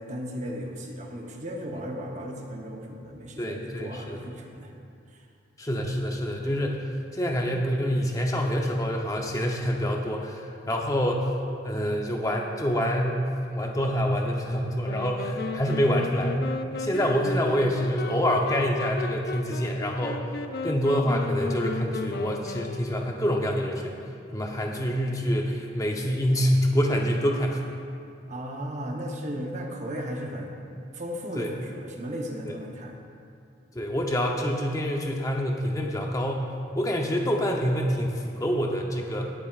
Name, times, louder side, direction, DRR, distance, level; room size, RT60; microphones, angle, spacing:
voice 1, 0.0-4.7 28.3-33.0, equal, 40° right, 1 dB, 1.0 m, -36 dB
voice 2, 3.4-4.2 5.6-11.3 11.6-16.4 16.7-20.2 20.6-24.0 24.3-27.6 31.4-31.5 32.5-32.6 33.7-39.3, equal, 20° left, 1 dB, 0.8 m, -26 dB
sound 1, 14.8-23.3, left 3 dB, 55° left, 0.4 m, -35 dB
19.5 x 7.5 x 2.5 m, 2.4 s
head